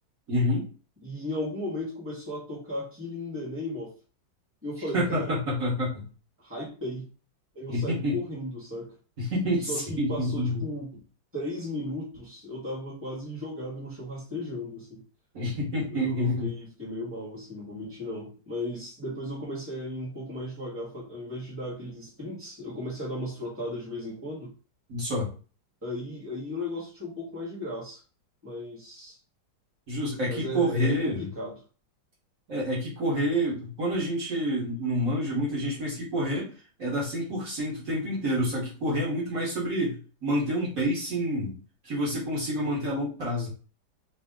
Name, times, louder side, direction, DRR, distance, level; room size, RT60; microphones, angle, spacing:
voice 1, 0.3-0.7 4.9-6.1 7.7-8.2 9.2-10.6 15.3-16.5 24.9-25.3 29.9-31.3 32.5-36.5 36.8-41.6 41.8-43.5, equal, 50° right, -6 dB, 1.7 m, -28 dB
voice 2, 1.0-3.9 4.6-5.4 6.4-7.1 7.5-8.9 9.7-10.9 11.3-15.0 15.9-24.5 25.8-28.0 28.4-29.2 30.3-31.5, left 1 dB, 10° right, -6 dB, 1.4 m, -35 dB
3.4 x 2.8 x 3.6 m, 0.37 s
omnidirectional pair, 2.0 m